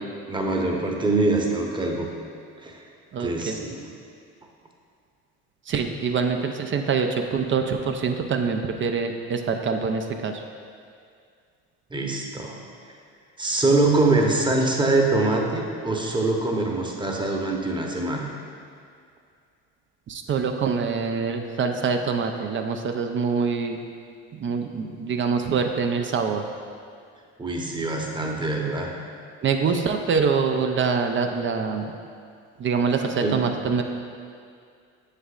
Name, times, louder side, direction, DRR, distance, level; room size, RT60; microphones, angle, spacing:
voice 1, 0.3-2.1 2.6-2.8 3.2-3.9 11.9-12.6 13.4-18.3 27.4-28.9 33.2-33.4, right 2 dB, 15° right, 0 dB, 0.9 m, -24 dB
voice 2, 3.1-3.6 5.7-10.4 20.1-23.8 24.4-26.4 29.4-31.9 32.6-33.8, right 5 dB, 40° right, 5 dB, 0.5 m, -25 dB
7.1 x 6.5 x 2.4 m, 2.2 s
supercardioid pair, 85°, 32 cm